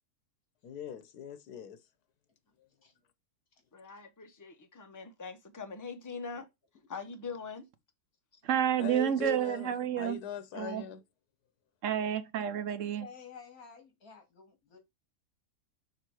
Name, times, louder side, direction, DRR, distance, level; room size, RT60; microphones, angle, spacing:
voice 1, 0.6-1.8 2.6-2.7 8.8-11.0, left 9 dB, 80° left, 1.4 m, -41 dB
voice 2, 3.7-6.5 6.9-7.7, left 5 dB, 20° left, 0.5 m, -42 dB
voice 3, 8.4-10.2 10.5-10.8 11.8-13.1, right 9 dB, 60° right, 1.0 m, -30 dB
voice 4, 13.0-14.8, left 6 dB, 65° left, 2.5 m, -51 dB
5.6 x 3.5 x 4.7 m
omnidirectional pair, 1.6 m